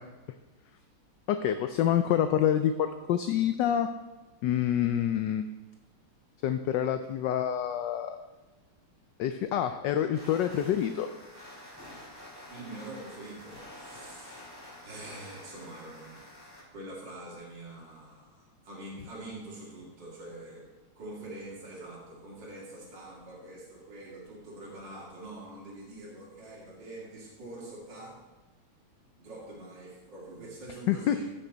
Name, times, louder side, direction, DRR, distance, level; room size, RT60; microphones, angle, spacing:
voice 1, 1.3-3.9 4.4-5.5 6.4-8.2 9.2-11.1 30.9-31.3, left 10 dB, 75° left, 9 dB, 1.0 m, -27 dB
sound 1, 10.1-16.6, left 1 dB, 5° right, 3.7 m, -48 dB
voice 2, 12.5-14.5 14.8-20.7 21.0-28.2 29.2-31.3, right 2 dB, 55° right, -5 dB, 3.1 m, -45 dB
15.0 x 6.5 x 3.9 m, 1.1 s
omnidirectional pair, 2.3 m